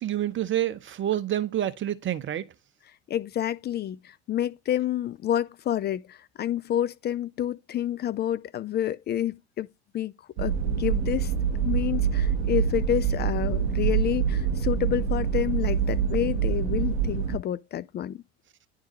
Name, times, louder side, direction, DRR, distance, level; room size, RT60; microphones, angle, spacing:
voice 1, 0.0-2.5, right 11 dB, 35° right, 0.8 m, -28 dB
voice 2, 3.1-9.7 9.9-10.1 10.4-11.3 11.6-18.2, left 11 dB, 30° left, 0.4 m, -29 dB
sound 1, 10.4-17.4, right 7 dB, 65° right, 1.3 m, -26 dB
10.0 x 3.6 x 3.1 m
hypercardioid pair, 65°, 34 cm